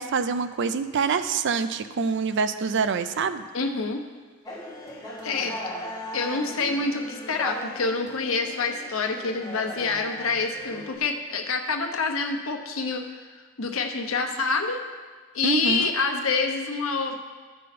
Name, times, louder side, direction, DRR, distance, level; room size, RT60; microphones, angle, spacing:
voice 1, 0.0-3.4 15.4-15.9, right 5 dB, 60° right, 11 dB, 0.5 m, -25 dB
voice 2, 3.5-4.0 5.2-5.5 6.1-13.2 13.6-14.8 15.3-17.2, left 4 dB, 80° left, 4 dB, 0.9 m, -27 dB
sound 1, 4.5-11.0, left 1 dB, 20° left, 1.8 m, -38 dB
14.0 x 5.6 x 4.2 m, 1.5 s
head